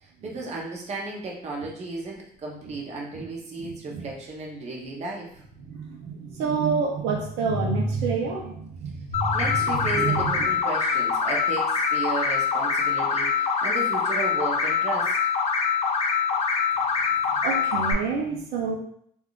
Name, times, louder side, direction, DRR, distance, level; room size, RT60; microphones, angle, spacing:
voice 1, 0.0-5.4 9.3-15.2, right 3 dB, 40° right, -1 dB, 0.8 m, -34 dB
voice 2, 3.6-4.1 5.7-10.5 17.4-18.7, right 4 dB, 85° right, 0 dB, 0.6 m, -28 dB
sound 1, 9.1-17.9, left 6 dB, 40° left, 0.4 m, -24 dB
3.4 x 2.4 x 2.4 m, 0.67 s
cardioid pair, 110°, 17 cm